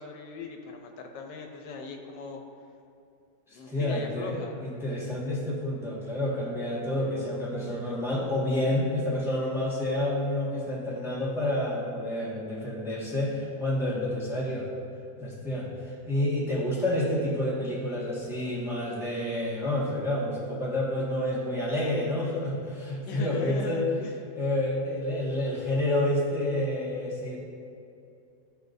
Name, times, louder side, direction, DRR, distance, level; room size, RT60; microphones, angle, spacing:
voice 1, 0.0-2.4 3.5-4.6 23.0-24.1, left 4 dB, 80° left, 3 dB, 1.4 m, -39 dB
voice 2, 3.7-14.7 15.2-23.8 24.3-27.4, left 1 dB, ahead, -7 dB, 1.4 m, -29 dB
14.0 x 4.8 x 2.6 m, 2.6 s
omnidirectional pair, 1.8 m